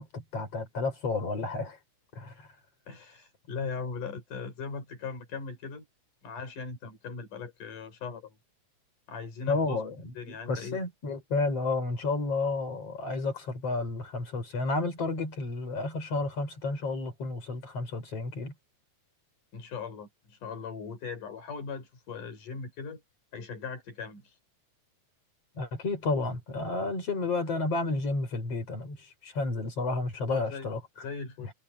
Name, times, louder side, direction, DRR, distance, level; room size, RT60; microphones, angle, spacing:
voice 1, 0.0-1.8 2.1-2.5 9.5-18.5 25.5-30.8 31.4-31.5, left 3 dB, 50° left, 5.9 m, -31 dB
voice 2, 2.9-5.9 6.2-8.4 9.1-9.8 10.2-10.8 19.5-23.0 23.3-24.4 30.3-30.7 31.0-31.5, left 5 dB, 80° left, 6.5 m, -39 dB
omnidirectional pair, 3.6 m